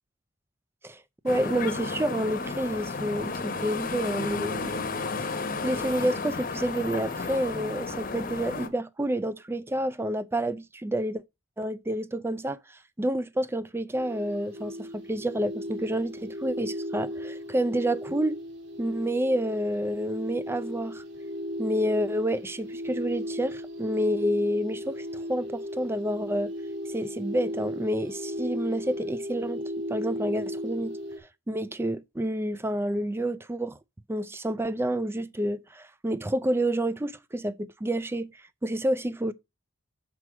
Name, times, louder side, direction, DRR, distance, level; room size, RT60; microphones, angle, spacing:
voice 1, 0.8-4.9 5.2-5.3 5.6-11.2 11.6-12.6 13.0-18.4 18.8-21.0 21.6-26.5 26.9-29.6 29.9-31.0 31.5-33.8 34.1-38.3 38.6-39.3, right 1 dB, 10° right, 0.4 m, -29 dB
sound 1, 1.3-8.7, left 4 dB, 40° left, 0.9 m, -32 dB
sound 2, 13.9-31.2, equal, 55° right, 1.9 m, -36 dB
6.1 x 4.7 x 6.1 m
head